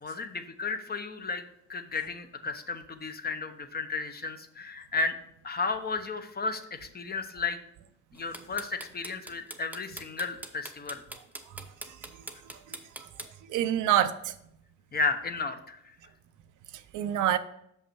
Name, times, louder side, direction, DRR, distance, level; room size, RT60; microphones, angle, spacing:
voice 1, 0.0-1.4 1.7-5.2 5.4-7.6 8.1-11.0 14.9-15.8, left 4 dB, 30° left, 8 dB, 0.8 m, -33 dB
sound 1, 8.2-13.3, right 1 dB, 5° right, 0.7 m, -41 dB
voice 2, 12.7-13.1 13.5-14.3 16.9-17.4, right 11 dB, 85° right, 11 dB, 0.6 m, -27 dB
6.4 x 5.5 x 4.6 m, 0.76 s
cardioid pair, 90°, 30 cm